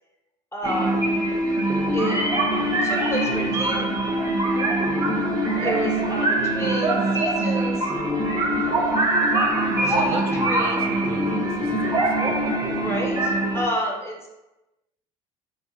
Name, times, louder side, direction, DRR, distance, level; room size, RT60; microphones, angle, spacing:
voice 1, 0.5-1.0 1.9-2.2 2.8-3.9 5.6-7.9 9.9-10.8 12.7-14.3, right 1 dB, 15° left, 0 dB, 0.9 m, -30 dB
sound 1, 0.6-13.7, right 1 dB, 20° right, 0.7 m, -23 dB
voice 2, 9.8-12.3, right 4 dB, 55° right, 3 dB, 0.6 m, -34 dB
2.7 x 2.3 x 3.9 m, 0.98 s
hypercardioid pair, 60°, 19 cm